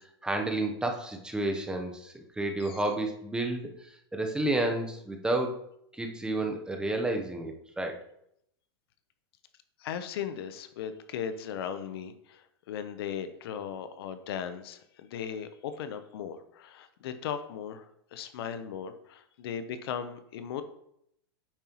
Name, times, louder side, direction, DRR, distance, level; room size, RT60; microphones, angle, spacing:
voice 1, 0.2-3.7 4.1-5.6 5.9-8.0, right 2 dB, 5° right, 3 dB, 0.8 m, -30 dB
voice 2, 9.8-20.6, left 8 dB, 70° left, 11 dB, 0.7 m, -37 dB
8.9 x 5.4 x 3.0 m, 0.74 s
supercardioid pair, 135°, 13 cm